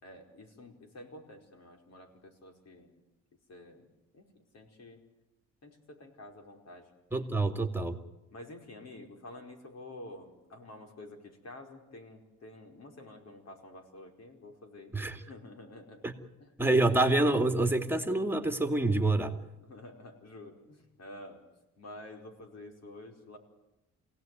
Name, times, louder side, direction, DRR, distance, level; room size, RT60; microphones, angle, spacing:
voice 1, 0.0-3.0 3.5-3.9 4.1-4.3 4.5-5.0 5.6-6.9 8.3-14.9 15.3-16.0 16.4-16.5 16.8-17.0 19.6-21.4 21.8-23.4, left 1 dB, 55° left, 4 dB, 5.2 m, -49 dB
voice 2, 7.1-8.0 14.9-15.2 16.0-16.1 16.6-19.3, right 2 dB, 5° right, 6 dB, 2.3 m, -27 dB
27.5 x 17.5 x 9.4 m, 0.94 s
cardioid pair, 90°, 30 cm